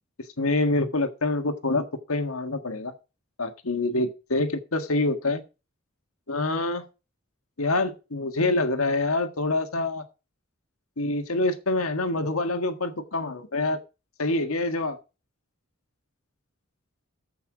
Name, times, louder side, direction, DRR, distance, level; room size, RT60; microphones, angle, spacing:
voice 1, 0.4-2.9 3.4-5.4 6.3-6.8 7.6-10.0 11.0-13.8 14.2-15.0, left 2 dB, 90° left, 1.6 m, -26 dB
14.0 x 5.6 x 4.9 m
head